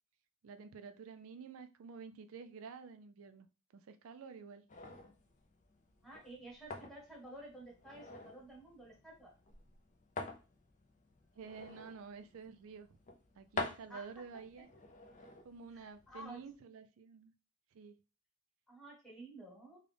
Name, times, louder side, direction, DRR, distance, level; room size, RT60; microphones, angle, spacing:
voice 1, 0.4-3.5 3.7-4.6 11.4-12.9 13.4-14.7 15.4-17.3 17.7-18.0, right 5 dB, 65° right, 0.4 m, -50 dB
sound 1, 4.7-16.5, left 3 dB, 35° left, 0.5 m, -48 dB
voice 2, 6.0-9.3 13.9-14.1 15.7-16.4 18.7-19.8, right 1 dB, ahead, 1.2 m, -52 dB
3.8 x 2.3 x 3.3 m
head